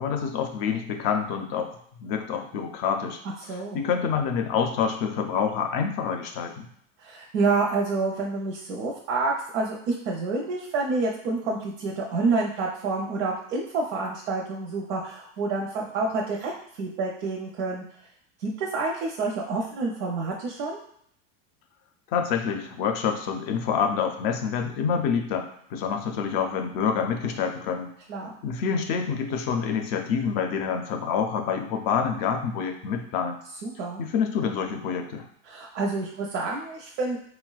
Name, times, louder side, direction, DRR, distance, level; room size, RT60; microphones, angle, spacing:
voice 1, 0.0-3.2 3.7-6.7 22.1-27.9 28.4-33.4 34.0-35.2, left 6 dB, 50° left, 5 dB, 0.5 m, -27 dB
voice 2, 3.5-3.8 7.0-17.8 18.4-20.8 28.1-28.3 33.6-34.0 35.4-37.2, right 3 dB, 80° right, -2 dB, 0.7 m, -28 dB
4.1 x 2.2 x 2.3 m, 0.68 s
supercardioid pair, 145°, 38 cm